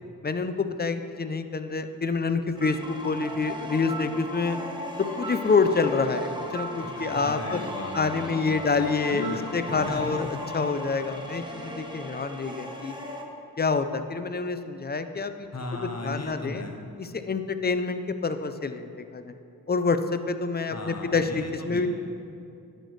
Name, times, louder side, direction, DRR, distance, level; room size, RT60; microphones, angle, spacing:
voice 1, 0.2-4.6 5.0-7.6 7.9-10.3 10.5-12.9 13.6-15.5 16.0-16.6 17.0-19.3 19.7-21.9, left 4 dB, 25° left, 9 dB, 0.5 m, -27 dB
sound 1, 2.6-13.2, equal, 10° right, 1.0 m, -36 dB
voice 2, 6.8-8.6 9.1-10.2 15.5-16.8 20.7-21.9, left 2 dB, 40° left, 2 dB, 1.1 m, -36 dB
10.5 x 6.5 x 3.2 m, 2.7 s
cardioid pair, 55°, 38 cm